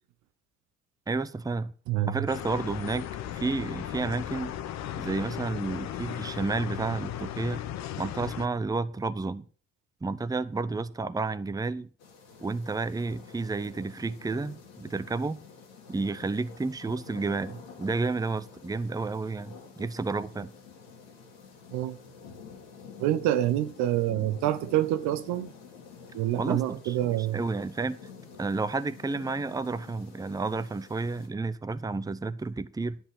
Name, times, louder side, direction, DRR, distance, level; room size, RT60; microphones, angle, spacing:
voice 1, 1.1-1.7 2.1-3.1 3.3-4.5 5.0-7.6 8.0-9.4 10.0-11.9 12.4-15.4 15.9-20.5 26.4-28.0 28.4-33.0, right 3 dB, 15° right, 0.7 m, -31 dB
voice 2, 1.9-2.2 21.7-22.0 23.0-25.5 26.1-27.4, right 13 dB, 75° right, 0.9 m, -27 dB
sound 1, 2.3-8.5, left 11 dB, 65° left, 0.9 m, -36 dB
sound 2, 12.0-31.3, left 5 dB, 85° left, 2.6 m, -49 dB
10.0 x 5.6 x 7.2 m
hypercardioid pair, 55°, 29 cm